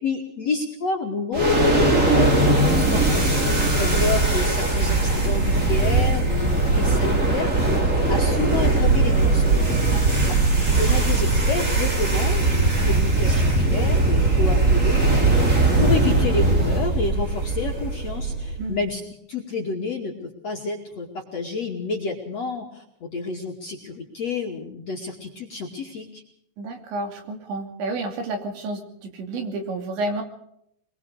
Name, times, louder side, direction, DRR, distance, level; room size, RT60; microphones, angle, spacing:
voice 1, 0.0-1.4 1.7-3.3 3.8-7.8 8.1-9.7 10.7-15.5 15.8-19.0 19.3-26.2, left 4 dB, 45° left, -1 dB, 2.6 m, -29 dB
sound 1, 1.3-18.7, right 2 dB, 25° right, 2.0 m, -20 dB
voice 2, 26.6-30.2, right 2 dB, 65° right, 5 dB, 4.8 m, -30 dB
24.0 x 22.0 x 4.9 m, 0.75 s
omnidirectional pair, 5.7 m